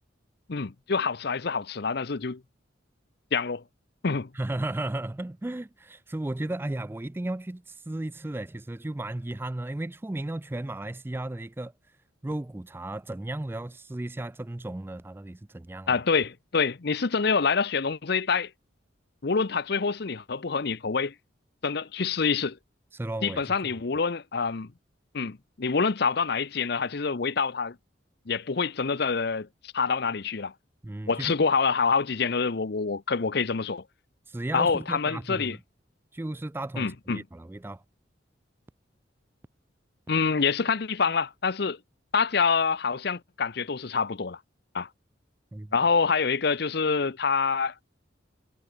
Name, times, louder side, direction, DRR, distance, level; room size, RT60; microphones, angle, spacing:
voice 1, 0.5-2.4 3.3-3.6 4.0-4.3 15.9-18.5 19.2-21.1 21.6-22.6 23.2-24.7 25.1-27.8 28.3-30.5 31.1-33.8 34.5-35.6 36.8-37.2 40.1-41.8 42.1-44.4 44.7-44.9 45.7-47.7, left 5 dB, 55° left, 0.7 m, -26 dB
voice 2, 4.3-11.7 12.2-16.0 22.9-23.4 30.8-31.3 34.3-35.6 36.1-37.8 45.5-45.7, right 1 dB, 10° right, 0.3 m, -34 dB
head